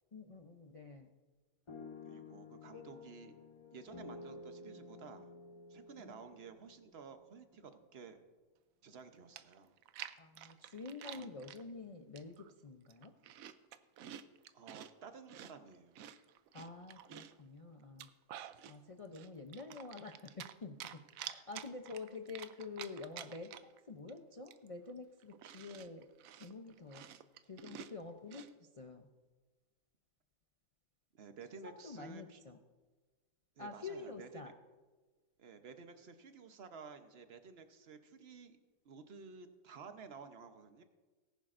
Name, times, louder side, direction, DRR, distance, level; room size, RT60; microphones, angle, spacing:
voice 1, 0.1-1.1 6.0-6.2 10.2-13.1 16.5-18.1 18.7-23.5 23.8-26.1 26.3-27.1 27.4-29.1 31.6-32.6 33.6-34.5, left 4 dB, 55° left, 4 dB, 0.3 m, -48 dB
sound 1, 1.7-7.7, left 3 dB, 30° left, 0.7 m, -52 dB
voice 2, 2.0-3.3 3.7-5.3 5.7-8.2 8.8-9.8 11.1-11.3 14.5-16.0 31.1-32.4 33.6-34.5 35.4-38.6 38.8-40.8, right 5 dB, 50° right, 8 dB, 1.0 m, -53 dB
Chewing mastication, 9.4-11.6 12.2-12.5 12.9-14.9 15.3-17.4 17.8-18.8 19.1-20.5 20.8-23.8 24.1-24.2 24.5-28.5, right 10 dB, 75° right, 1.0 m, -50 dB
19.0 x 10.5 x 2.6 m, 1.3 s
omnidirectional pair, 1.5 m